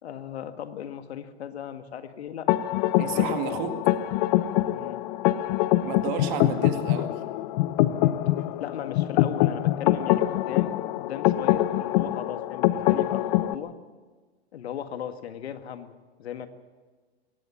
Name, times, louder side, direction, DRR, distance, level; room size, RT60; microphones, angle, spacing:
voice 1, 0.0-2.5 3.0-3.7 4.7-5.0 8.6-13.7 14.5-16.5, left 9 dB, 70° left, 8 dB, 2.0 m, -37 dB
sound 1, 2.5-13.5, left 15 dB, 40° left, 0.9 m, -24 dB
voice 2, 3.0-3.8 5.8-7.2, right 9 dB, 45° right, 6 dB, 2.3 m, -32 dB
23.0 x 17.5 x 7.3 m, 1.4 s
hypercardioid pair, 120°, 33 cm